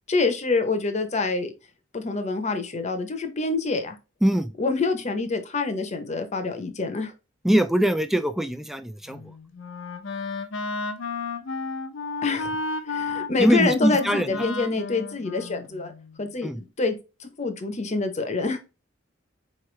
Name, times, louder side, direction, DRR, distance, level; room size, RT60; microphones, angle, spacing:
voice 1, 0.1-1.5 1.9-4.0 4.6-7.1 12.2-12.5 12.9-15.9 16.2-18.6, left 3 dB, 35° left, 0.7 m, -26 dB
voice 2, 4.2-4.5 7.4-9.2 13.4-14.3 16.4-16.6, right 1 dB, ahead, 0.3 m, -22 dB
Wind instrument woodwind instrument, 9.1-16.2, left 3 dB, 80° left, 0.7 m, -33 dB
4.5 x 3.1 x 3.2 m
head